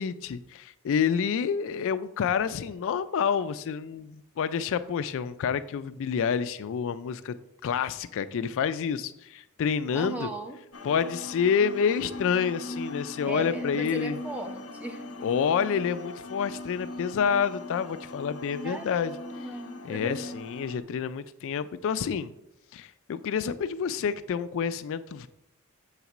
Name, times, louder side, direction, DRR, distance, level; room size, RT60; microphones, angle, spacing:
voice 1, 0.0-7.4 7.6-10.3 10.8-14.2 15.2-19.1 19.8-22.3 22.7-25.3, left 7 dB, 60° left, 12 dB, 0.3 m, -28 dB
voice 2, 9.9-10.6 13.3-15.0 18.6-20.2, right 2 dB, 5° right, 3 dB, 0.8 m, -37 dB
sound 1, 10.7-20.8, left 2 dB, 75° left, 0.9 m, -40 dB
7.2 x 4.0 x 5.9 m, 0.84 s
head